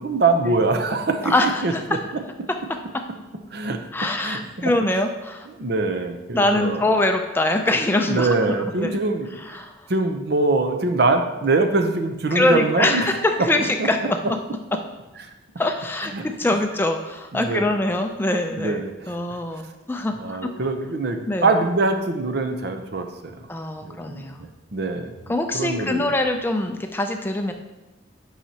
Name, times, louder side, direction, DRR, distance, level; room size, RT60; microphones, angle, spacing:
voice 1, 0.0-1.3 1.6-2.0 3.5-3.8 4.2-4.7 5.6-7.0 8.1-13.1 13.8-13.9 16.1-16.3 17.3-17.7 18.6-19.1 20.2-23.5 23.8-26.0, right 3 dB, 55° right, 6 dB, 0.6 m, -23 dB
voice 2, 1.2-2.0 3.9-5.5 6.3-8.9 9.5-9.7 12.3-14.2 15.6-18.8 19.1-20.4 21.3-21.5 23.5-24.4 25.3-27.5, left 2 dB, 10° left, 5 dB, 0.4 m, -23 dB
9.0 x 5.7 x 2.8 m, 1.1 s
head